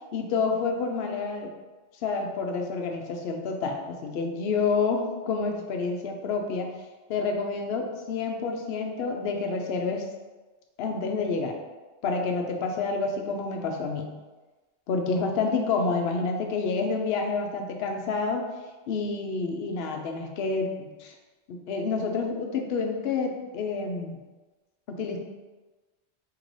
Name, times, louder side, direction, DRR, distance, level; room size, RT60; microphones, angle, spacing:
voice 1, 0.1-1.5 2.0-6.7 7.1-10.1 10.8-11.6 12.0-14.1 14.9-18.4 18.9-21.1 21.5-24.2 24.9-25.2, left 4 dB, 65° left, 2 dB, 0.8 m, -28 dB
3.1 x 2.9 x 3.9 m, 1.2 s
omnidirectional pair, 1.2 m